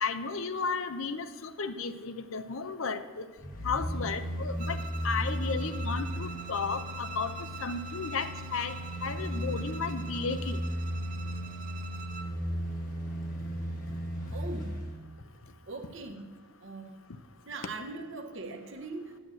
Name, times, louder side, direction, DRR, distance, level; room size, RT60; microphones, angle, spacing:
voice 1, 0.0-3.2 3.6-4.8 5.0-7.3 7.6-8.8 9.0-10.6, left 5 dB, 65° left, 11 dB, 0.6 m, -33 dB
sound 1, 3.4-15.0 15.3-15.4, equal, 40° left, 1.3 m, -35 dB
Bowed string instrument, 4.6-12.4, right 5 dB, 35° right, 0.4 m, -45 dB
voice 2, 14.3-14.8 15.7-16.3 16.6-17.0 17.5-19.2, right 3 dB, 55° right, 5 dB, 1.0 m, -40 dB
9.3 x 7.9 x 7.7 m, 1.4 s
head